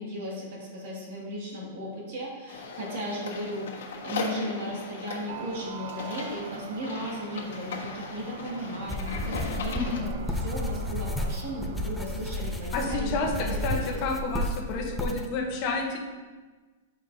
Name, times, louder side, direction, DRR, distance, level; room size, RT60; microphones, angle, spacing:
voice 1, 0.0-3.7 4.0-14.0, equal, 55° right, -3 dB, 1.9 m, -36 dB
sound 1, 2.5-10.0, left 4 dB, 80° left, 1.3 m, -38 dB
sound 2, 5.3-13.2, right 6 dB, 70° right, 0.6 m, -44 dB
sound 3, 8.9-15.3, left 1 dB, 5° left, 0.4 m, -32 dB
voice 2, 9.7-10.2 12.7-13.3 13.6-16.0, left 3 dB, 35° left, 1 dB, 0.9 m, -30 dB
7.9 x 5.0 x 2.7 m, 1.3 s
supercardioid pair, 165°, 0 cm